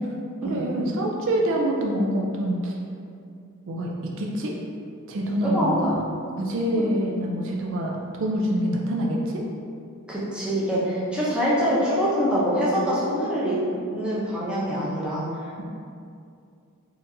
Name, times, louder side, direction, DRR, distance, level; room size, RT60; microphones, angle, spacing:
voice 1, 0.4-2.8 3.7-4.5 5.1-6.0 6.4-9.4, right 1 dB, 60° right, -1 dB, 0.4 m, -26 dB
voice 2, 5.4-5.9 6.7-6.9 10.1-13.6 13.9-15.4, equal, 5° right, -8 dB, 0.6 m, -24 dB
4.2 x 2.5 x 2.6 m, 2.4 s
head